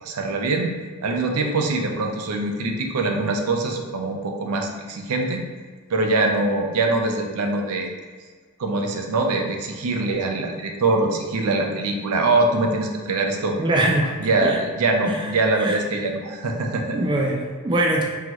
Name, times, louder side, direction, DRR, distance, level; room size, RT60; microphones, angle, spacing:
voice 1, 0.0-0.7 1.0-5.4 5.9-7.9 8.6-13.6 14.2-17.0, right 2 dB, 80° right, 3 dB, 0.5 m, -23 dB
voice 2, 13.6-14.6 15.0-15.3 15.6-15.8 16.9-18.0, right 1 dB, 20° right, -1 dB, 0.3 m, -23 dB
3.8 x 3.0 x 3.0 m, 1.5 s
head